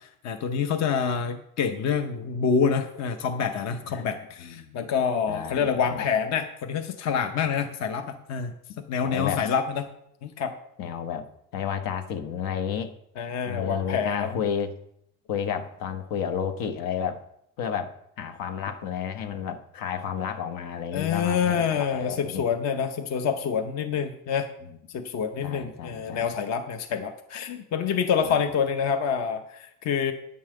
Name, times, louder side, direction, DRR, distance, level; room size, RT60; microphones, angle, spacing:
voice 1, 0.2-9.9 10.2-10.5 13.2-14.4 20.9-24.5 24.9-30.1, left 6 dB, 50° left, 7 dB, 0.8 m, -27 dB
voice 2, 3.9-4.8 5.3-6.1 9.0-9.4 10.8-11.3 11.5-12.9 13.5-14.8 15.3-17.2 17.6-22.5 24.7-24.8 25.4-26.3 28.2-28.4, left 8 dB, 75° left, 8 dB, 1.1 m, -32 dB
10.0 x 5.6 x 7.7 m, 0.74 s
cardioid pair, 170°, 34 cm